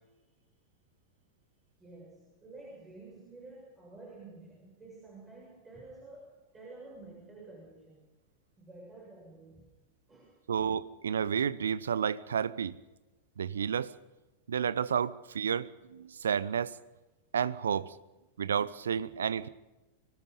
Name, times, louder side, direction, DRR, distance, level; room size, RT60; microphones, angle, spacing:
voice 1, 1.8-8.0 8.6-9.7 10.1-10.6, right 2 dB, 15° right, 7.0 m, -51 dB
voice 2, 10.5-12.8 13.4-13.9 14.5-16.8 17.3-17.9 18.4-19.5, right 7 dB, 65° right, 0.8 m, -31 dB
25.0 x 19.5 x 5.5 m
figure-of-eight pair, 90°, 0 cm